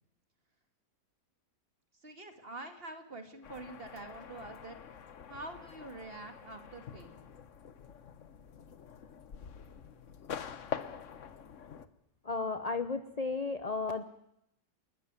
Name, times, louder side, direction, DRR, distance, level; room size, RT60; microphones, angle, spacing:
voice 1, 2.0-4.8 5.3-7.2, right 2 dB, 35° right, 7 dB, 2.3 m, -46 dB
sound 1, 3.4-11.9, left 7 dB, 50° left, 1.2 m, -45 dB
voice 2, 12.2-14.0, left 4 dB, 30° left, 10 dB, 0.7 m, -34 dB
29.0 x 13.5 x 9.6 m, 0.80 s
omnidirectional pair, 1.9 m